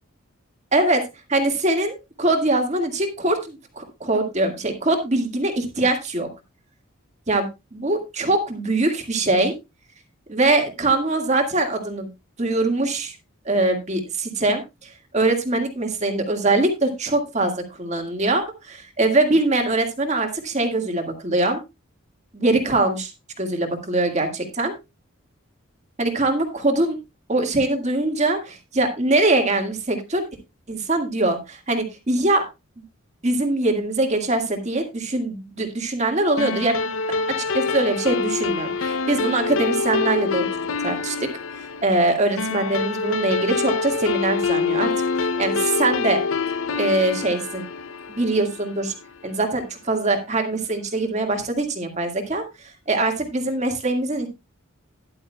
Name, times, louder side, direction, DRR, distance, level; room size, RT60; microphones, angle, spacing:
voice 1, 0.7-1.0 1.3-6.3 7.3-9.6 10.3-12.1 12.4-13.2 13.5-17.5 17.8-21.6 22.3-23.1 23.4-24.7 26.0-27.0 27.3-30.3 30.7-32.4 33.2-36.9 37.5-40.4 40.8-41.3 41.8-44.9 45.2-46.2 46.8-47.6 48.1-48.9 49.2-54.3, right 2 dB, 35° right, 4 dB, 1.8 m, -22 dB
sound 1, 36.4-49.1, left 4 dB, 75° left, 0.6 m, -26 dB
13.0 x 11.0 x 2.2 m, 0.24 s
head